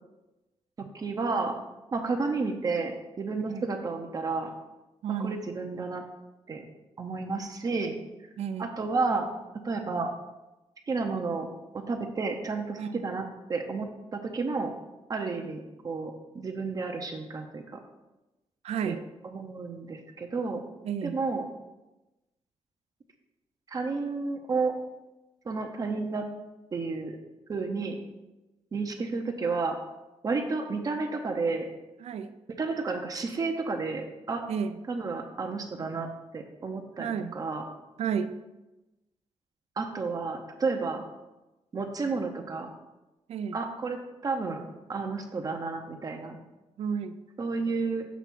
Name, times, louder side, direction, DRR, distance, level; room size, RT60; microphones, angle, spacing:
voice 1, 0.8-1.6 1.9-4.5 5.2-6.0 6.5-6.6 7.0-8.0 8.6-9.3 9.6-10.1 10.9-11.5 11.7-13.2 13.5-14.8 15.1-17.8 18.8-19.0 19.2-20.6 21.0-21.4 23.7-24.7 25.5-26.2 26.7-27.2 27.5-28.0 28.7-29.8 30.2-31.7 32.6-34.4 34.9-36.1 36.3-37.6 39.8-41.0 41.7-42.7 43.5-44.6 44.9-46.4 47.4-48.0, right 4 dB, 35° right, 4 dB, 0.6 m, -31 dB
voice 2, 5.0-5.4 8.4-8.7 12.8-13.0 18.6-19.0 20.8-21.2 32.0-32.3 34.5-34.8 37.0-37.3 38.0-38.3 43.3-43.6 46.8-47.2, right 7 dB, 70° right, 11 dB, 0.4 m, -32 dB
7.0 x 3.5 x 6.0 m, 1.0 s
wide cardioid pair, 170°, 11 cm